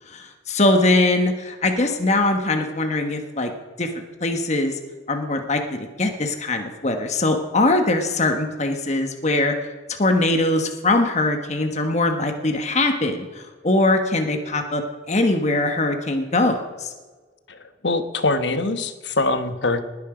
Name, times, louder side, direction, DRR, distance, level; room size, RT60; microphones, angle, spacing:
voice 1, 0.1-3.5 3.8-3.9 4.2-4.8 5.1-9.5 10.0-14.8 15.1-16.9, left 2 dB, 40° left, 5 dB, 1.3 m, -21 dB
voice 2, 17.5-19.8, left 2 dB, 70° left, 10 dB, 1.2 m, -23 dB
19.5 x 9.8 x 5.0 m, 1.3 s
head